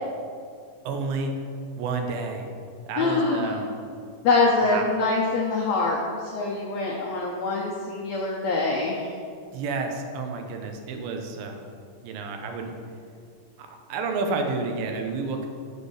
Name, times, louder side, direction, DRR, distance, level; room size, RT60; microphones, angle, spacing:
voice 1, 0.9-1.3 1.8-2.5 2.9-3.7 4.6-4.9 9.5-11.7 12.0-12.7 13.6-15.5, right 4 dB, 85° right, 4 dB, 2.6 m, -30 dB
voice 2, 3.0-3.6 4.2-9.1, left 3 dB, 80° left, -3 dB, 1.6 m, -24 dB
6.6 x 5.3 x 6.3 m, 2.2 s
omnidirectional pair, 4.1 m